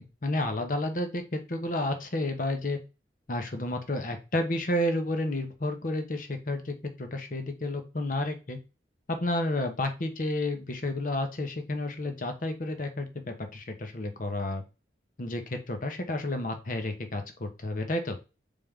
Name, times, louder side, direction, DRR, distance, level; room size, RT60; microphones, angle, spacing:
voice 1, 0.0-2.8 3.3-8.6 9.1-14.6 15.2-18.2, left 1 dB, 50° left, 6 dB, 1.0 m, -31 dB
4.1 x 3.6 x 3.6 m, 0.30 s
head